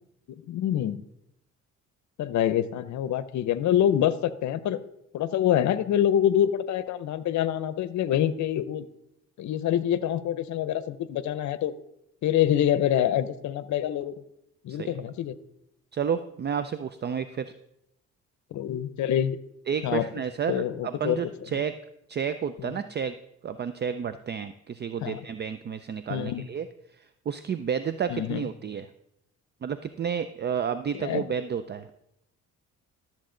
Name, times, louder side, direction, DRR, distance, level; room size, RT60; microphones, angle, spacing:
voice 1, 0.3-1.0 2.2-4.8 5.1-8.9 9.4-11.7 12.2-14.1 14.6-15.4 18.5-19.4 19.8-20.1 20.5-21.2 22.6-22.7 25.0-25.2 26.1-26.5 28.1-28.5 30.9-31.3, left 10 dB, 70° left, 15 dB, 0.7 m, -26 dB
voice 2, 15.9-17.5 19.7-21.7 22.1-23.2 23.4-26.7 26.9-28.9 29.6-31.9, right 7 dB, 35° right, 12 dB, 0.5 m, -31 dB
12.5 x 7.4 x 3.8 m, 0.80 s
cardioid pair, 90°, 30 cm